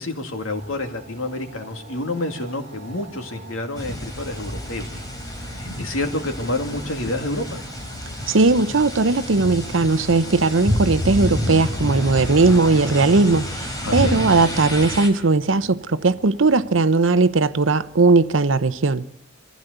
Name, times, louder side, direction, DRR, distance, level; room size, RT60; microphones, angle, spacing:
voice 1, 0.0-4.9 5.4-7.6 13.8-14.2, left 2 dB, 85° left, 2.5 m, -28 dB
sound 1, 0.6-19.0, right 2 dB, 35° right, 6.8 m, -46 dB
sound 2, 3.7-15.1, left 1 dB, 20° left, 4.0 m, -29 dB
voice 2, 8.3-19.0, right 3 dB, 70° right, 0.8 m, -18 dB
24.0 x 15.5 x 8.1 m
head